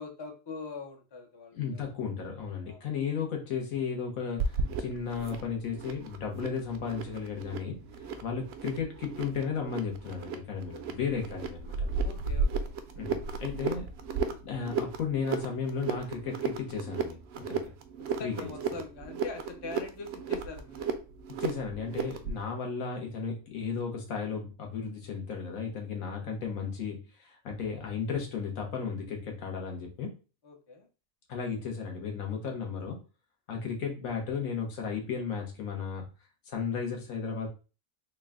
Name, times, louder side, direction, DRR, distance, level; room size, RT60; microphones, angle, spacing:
voice 1, 0.0-1.9 2.6-2.8 8.3-8.5 12.0-12.7 18.2-21.0 30.4-30.9, left 3 dB, 45° left, 5 dB, 0.3 m, -43 dB
voice 2, 1.5-7.8 8.2-11.9 13.0-13.8 14.4-17.6 18.2-18.8 21.4-30.1 31.3-33.0 33.5-36.1 36.5-37.5, left 6 dB, 85° left, 1 dB, 1.4 m, -34 dB
sound 1, 4.4-22.4, right 5 dB, 65° right, 0.7 m, -35 dB
3.8 x 2.2 x 3.5 m, 0.33 s
omnidirectional pair, 1.4 m